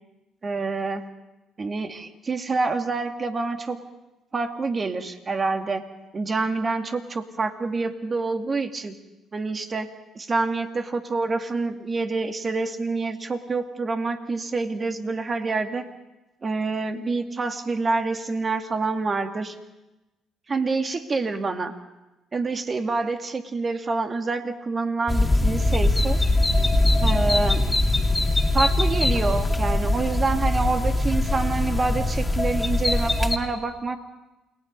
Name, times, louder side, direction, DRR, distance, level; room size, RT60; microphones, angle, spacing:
voice 1, 0.4-1.0 1.6-3.8 4.3-5.8 6.1-9.0 9.3-9.9 10.2-15.8 16.4-19.6 20.5-21.7 22.3-26.2 27.0-27.7 28.5-34.0, right 3 dB, 35° right, 6 dB, 2.2 m, -27 dB
sound 1, 25.1-33.4, left 2 dB, 15° left, 2.5 m, -22 dB
29.0 x 19.5 x 5.4 m, 1.0 s
supercardioid pair, 60°, 0 cm